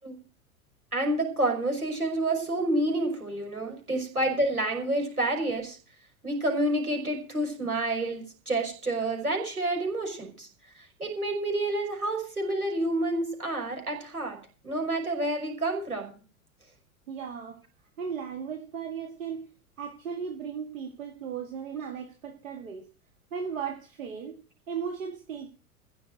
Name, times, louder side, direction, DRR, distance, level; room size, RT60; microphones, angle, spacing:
voice 1, 0.9-5.8 6.2-10.5 11.0-14.4 14.6-16.2, right 1 dB, 85° right, 5.8 m, -29 dB
voice 2, 17.1-17.6 18.0-19.5 19.8-22.9 23.3-24.4 24.7-25.5, right 7 dB, 65° right, 2.1 m, -36 dB
16.0 x 6.2 x 8.9 m
figure-of-eight pair, 90°, 43 cm